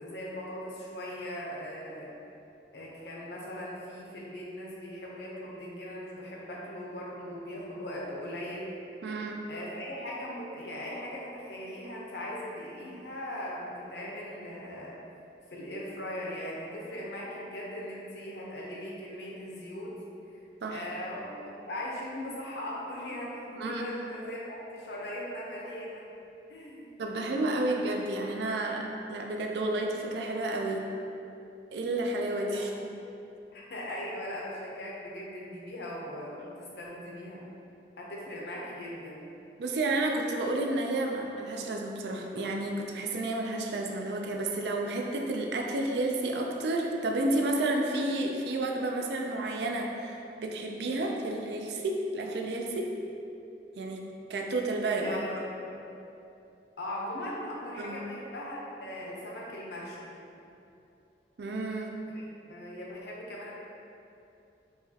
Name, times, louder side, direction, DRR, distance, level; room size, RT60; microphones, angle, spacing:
voice 1, 0.0-2.1 2.7-8.7 9.5-15.0 15.5-19.9 20.7-26.0 26.5-26.9 32.5-32.7 33.5-37.4 38.0-39.2 49.5-49.6 55.0-55.8 56.8-60.1 62.1-62.2 62.5-63.5, left 1 dB, 70° left, -4 dB, 0.7 m, -39 dB
voice 2, 9.0-9.4 20.6-20.8 23.6-23.8 27.0-30.8 31.7-32.9 39.6-52.9 53.8-54.0 54.3-55.2 57.8-58.1 61.4-62.0, right 2 dB, 75° right, 1 dB, 0.4 m, -31 dB
4.7 x 2.4 x 2.8 m, 2.7 s
head